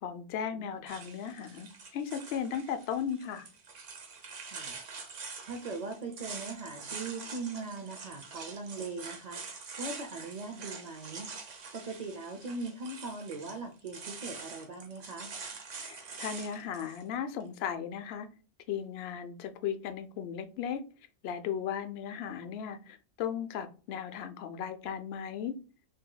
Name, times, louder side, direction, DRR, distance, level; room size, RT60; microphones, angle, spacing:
voice 1, 0.0-3.5 15.8-18.3 18.7-20.8 21.2-25.6, left 8 dB, 65° left, 9 dB, 0.7 m, -36 dB
voice 2, 0.5-0.9 4.4-4.7 5.4-9.4 9.8-11.3 11.7-15.3, right 3 dB, 50° right, 3 dB, 0.5 m, -40 dB
sound 1, 0.9-17.0, right 5 dB, 85° right, 1.3 m, -45 dB
6.0 x 2.7 x 2.3 m, 0.36 s
omnidirectional pair, 1.2 m